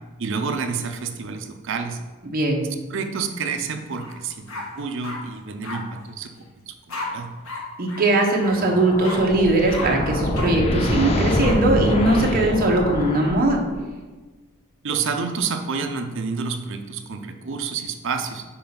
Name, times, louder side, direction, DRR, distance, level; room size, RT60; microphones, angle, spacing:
voice 1, 0.2-2.0 2.9-6.3 6.7-7.3 14.8-18.4, right 5 dB, 65° right, 6 dB, 0.6 m, -29 dB
voice 2, 2.3-2.6 7.8-13.6, right 2 dB, 45° right, 0 dB, 1.1 m, -20 dB
sound 1, 4.0-4.1 4.5-5.2 5.6-5.8 6.9-7.1 7.4-7.6 7.9-8.0 8.4-8.5 9.0-9.2 9.7-9.8 10.3-10.5 11.4-11.6, left 3 dB, 80° left, 1.4 m, -33 dB
sound 2, 8.5-14.0, left 1 dB, 30° left, 0.6 m, -25 dB
5.5 x 4.3 x 5.7 m, 1.3 s
head